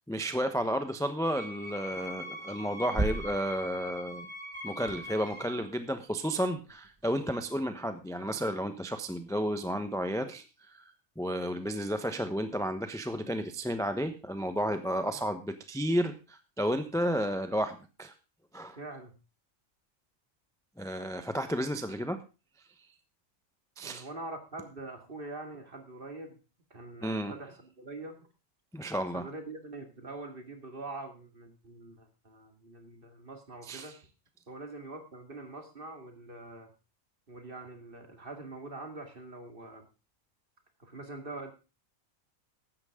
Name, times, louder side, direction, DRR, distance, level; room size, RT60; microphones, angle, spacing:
voice 1, 0.1-4.3 4.6-10.8 11.2-18.1 18.5-18.8 20.8-22.2 23.8-24.1 27.0-27.3 28.7-29.3 33.6-33.9, equal, 5° left, 8 dB, 0.8 m, -32 dB
Wind instrument woodwind instrument, 1.3-5.6, left 1 dB, 20° left, 6.0 m, -42 dB
sound 1, 2.3-4.2 4.5-5.9 6.3-8.6 9.1-10.0, right 2 dB, 15° right, 1.2 m, -40 dB
voice 2, 18.8-19.1 23.8-26.4 26.7-28.3 29.1-33.9 34.5-36.7 37.3-39.9 40.8-41.5, right 2 dB, 40° right, 5 dB, 2.4 m, -44 dB
15.0 x 11.5 x 3.7 m, 0.31 s
omnidirectional pair, 1.4 m